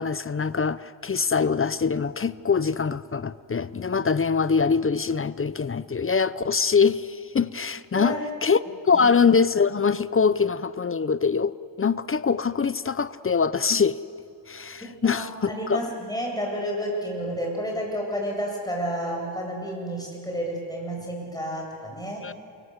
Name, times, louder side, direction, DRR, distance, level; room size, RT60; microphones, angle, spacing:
voice 1, 0.0-8.6 8.8-14.0 14.5-15.8 22.2-22.3, left 5 dB, 30° left, 16 dB, 0.6 m, -23 dB
voice 2, 14.8-22.2, equal, 10° left, -1 dB, 8.0 m, -31 dB
29.0 x 23.5 x 8.1 m, 2.4 s
cardioid pair, 105°, 47 cm